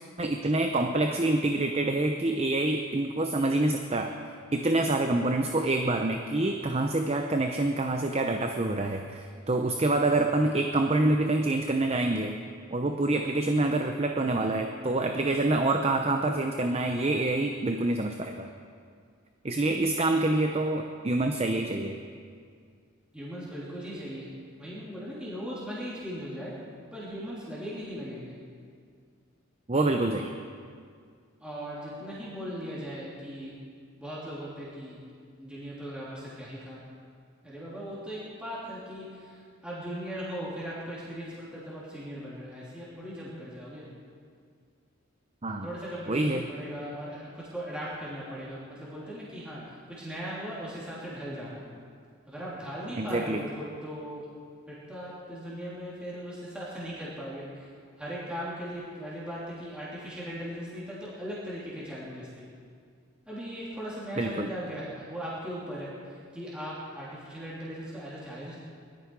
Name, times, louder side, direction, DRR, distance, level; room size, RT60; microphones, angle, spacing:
voice 1, 0.2-4.1 4.5-12.4 12.7-18.5 19.4-22.0 29.7-30.3 45.4-45.7 46.1-46.5 53.0-53.5 64.2-64.5, right 2 dB, 30° right, 5 dB, 0.7 m, -26 dB
voice 2, 23.1-24.3 24.6-26.6 26.9-28.3 31.4-33.5 34.0-35.0 35.4-36.9 37.4-43.9 45.6-51.6 52.3-54.3 54.7-57.7 58.0-62.3 63.3-65.9 66.3-68.6, equal, 5° right, -8 dB, 3.1 m, -38 dB
20.5 x 13.5 x 4.8 m, 2.2 s
head